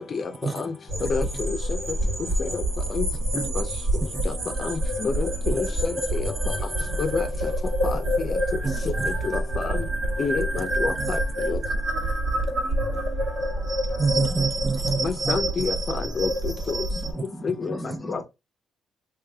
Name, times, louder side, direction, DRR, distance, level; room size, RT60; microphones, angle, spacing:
voice 1, 0.1-0.7 1.1-1.6 2.4-2.6 2.9-3.1 3.6-3.7 4.3-4.4 4.6-6.3 7.0-7.3 7.8-8.4 9.2-9.8 10.2-11.2 11.5-11.6 15.0-16.3 16.7-16.8 17.4-17.8 18.1-18.2, left 5 dB, 45° left, 0.6 m, -28 dB
sound 1, 0.9-17.1, right 1 dB, 75° right, 2.0 m, -27 dB
voice 2, 1.0-1.4 3.3-3.5 4.0-4.3 5.5-5.6 6.9-7.0 8.6-9.1 10.9-11.1 14.0-15.4, right 4 dB, 25° right, 0.4 m, -29 dB
voice 3, 16.9-18.2, right 1 dB, 5° left, 1.2 m, -37 dB
3.2 x 3.0 x 3.4 m
cardioid pair, 90°, 0 cm